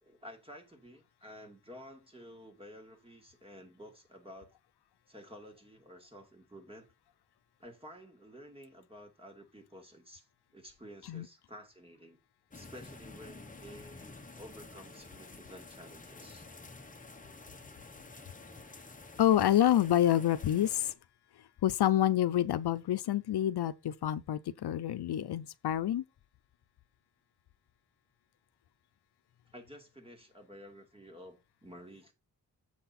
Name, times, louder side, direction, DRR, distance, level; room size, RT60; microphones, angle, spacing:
voice 1, 0.0-4.5 5.1-6.9 7.6-10.3 10.5-12.2 12.5-16.5 29.5-32.1, equal, 15° right, 2.3 m, -52 dB
sound 1, 12.5-20.9, left 3 dB, 20° left, 1.0 m, -50 dB
voice 2, 19.2-20.9 21.6-26.0, left 11 dB, 80° left, 0.6 m, -27 dB
7.6 x 6.0 x 4.3 m
wide cardioid pair, 130°, 39 cm